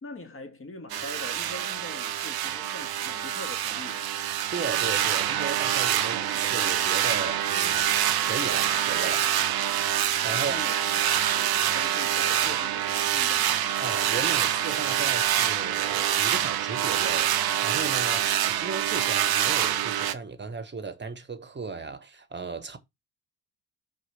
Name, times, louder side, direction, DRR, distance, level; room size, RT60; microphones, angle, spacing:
voice 1, 0.0-4.1 10.3-10.8 11.3-13.7, left 2 dB, 25° left, 2.1 m, -43 dB
sound 1, 0.9-20.1, right 11 dB, 50° right, 0.8 m, -26 dB
voice 2, 4.5-7.9 8.3-9.3 10.2-10.6 13.8-22.8, right 4 dB, 20° right, 1.4 m, -36 dB
4.8 x 4.0 x 5.6 m
hypercardioid pair, 50°, 47 cm